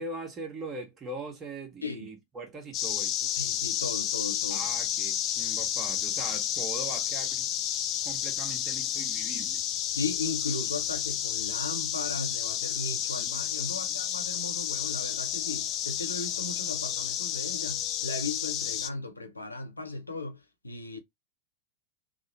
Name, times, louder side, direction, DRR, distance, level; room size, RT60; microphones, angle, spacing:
voice 1, 0.0-3.3 4.5-7.5 8.0-9.7 13.2-13.4 13.7-14.0, right 3 dB, 25° right, 1.2 m, -41 dB
voice 2, 1.8-2.1 3.4-4.7 9.9-21.0, left 3 dB, 80° left, 0.6 m, -36 dB
sound 1, 2.7-18.9, left 10 dB, 35° left, 0.4 m, -31 dB
3.0 x 2.1 x 4.0 m
figure-of-eight pair, 90°, 0 cm